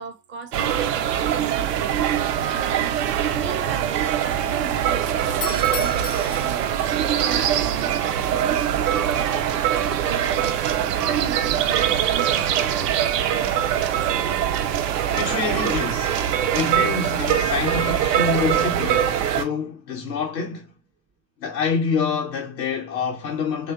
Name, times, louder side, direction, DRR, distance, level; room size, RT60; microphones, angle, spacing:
voice 1, 0.0-2.0 2.5-8.0 8.3-12.5, right 6 dB, 25° right, 0.4 m, -37 dB
sound 1, 0.5-19.4, right 10 dB, 75° right, 0.5 m, -22 dB
Doorbell, 5.3-7.2, left 9 dB, 35° left, 0.4 m, -35 dB
voice 2, 15.1-20.7 21.4-23.7, left 5 dB, 80° left, 0.8 m, -27 dB
2.7 x 2.2 x 2.3 m
figure-of-eight pair, 70°, 49 cm